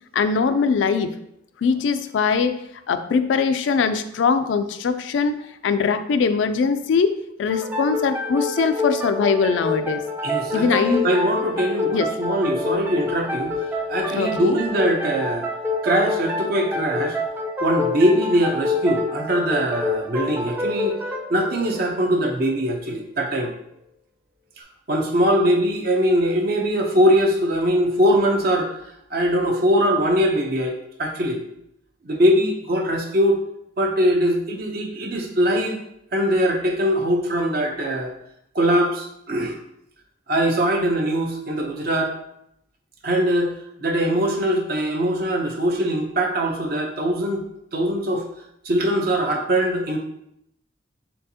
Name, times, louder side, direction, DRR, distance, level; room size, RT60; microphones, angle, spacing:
voice 1, 0.1-1.1 1.6-2.6 2.9-5.4 5.6-10.0 10.5-11.1 11.9-12.1 14.2-14.6, left 5 dB, 85° left, 10 dB, 0.3 m, -21 dB
sound 1, 7.5-22.8, left 2 dB, 10° right, 0.4 m, -27 dB
voice 2, 10.2-13.6 13.9-15.5 15.8-17.2 17.6-21.0 21.3-23.5 24.6-28.7 29.1-31.4 32.0-33.4 33.8-35.8 36.1-38.1 38.5-39.6 40.3-42.1 43.0-43.5 43.8-47.4 47.7-48.3 48.6-50.0, equal, 55° right, 2 dB, 0.7 m, -21 dB
4.4 x 3.5 x 2.8 m, 0.77 s
head